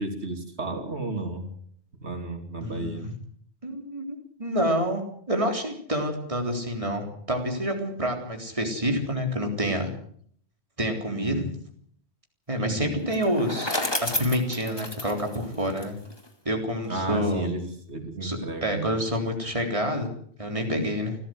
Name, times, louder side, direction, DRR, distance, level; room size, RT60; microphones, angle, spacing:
voice 1, 0.0-1.5 2.0-3.1 11.1-11.5 12.6-13.0 16.9-18.9, right 2 dB, 90° right, 4 dB, 3.3 m, -32 dB
voice 2, 2.6-3.1 3.6-9.9 10.8-11.4 12.5-16.0 16.5-17.5 18.2-20.1 20.4-21.2, equal, 30° right, 3 dB, 3.8 m, -28 dB
Bicycle, 13.1-16.3, left 1 dB, 25° left, 2.5 m, -31 dB
29.5 x 13.0 x 7.9 m, 0.62 s
omnidirectional pair, 1.1 m